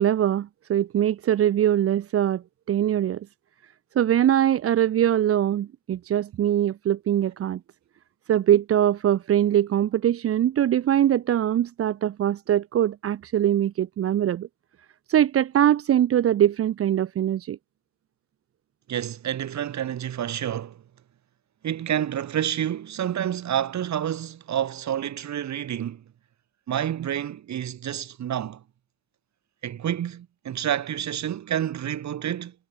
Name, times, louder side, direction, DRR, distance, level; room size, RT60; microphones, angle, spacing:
voice 1, 0.0-2.4 2.7-3.3 4.0-7.6 8.3-14.5 15.1-17.6, right 11 dB, 50° right, 0.6 m, -22 dB
voice 2, 18.9-20.8 21.6-26.0 26.7-28.6 29.6-32.5, right 10 dB, 65° right, 4.9 m, -29 dB
cardioid pair, 90°, 30 cm